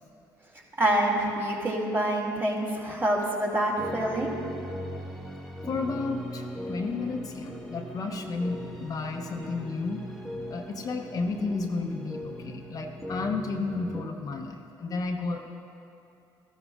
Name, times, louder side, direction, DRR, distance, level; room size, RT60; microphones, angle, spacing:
voice 1, 0.8-4.3, right 1 dB, 30° right, -2 dB, 2.5 m, -26 dB
sound 1, 3.8-14.0, equal, ahead, 1.3 m, -39 dB
voice 2, 5.7-10.0 10.5-15.5, left 3 dB, 45° left, 3 dB, 0.8 m, -32 dB
14.5 x 12.5 x 2.5 m, 2.8 s
supercardioid pair, 85°, 8 cm